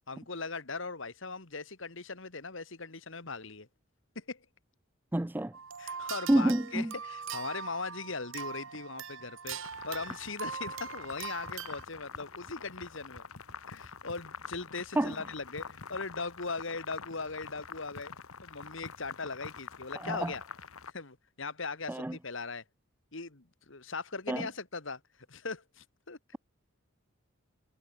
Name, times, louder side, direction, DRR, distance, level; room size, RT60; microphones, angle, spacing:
voice 1, 0.1-3.7 4.2-4.5 5.8-9.6 9.9-13.3 13.7-18.1 18.4-20.4 20.9-22.6 23.1-25.0 25.3-26.2, left 4 dB, 60° left, 1.9 m, -39 dB
voice 2, 5.1-5.6 6.3-6.9 15.0-15.1 20.0-20.3 21.9-22.2 24.3-24.5, right 1 dB, 10° right, 0.4 m, -28 dB
sound 1, 5.5-11.8, right 6 dB, 65° right, 1.5 m, -41 dB
sound 2, 9.5-9.9 10.1-10.5 10.8-10.9 11.1-14.6, equal, 35° right, 5.1 m, -57 dB
sound 3, 9.6-20.9, left 5 dB, 90° left, 1.5 m, -46 dB
head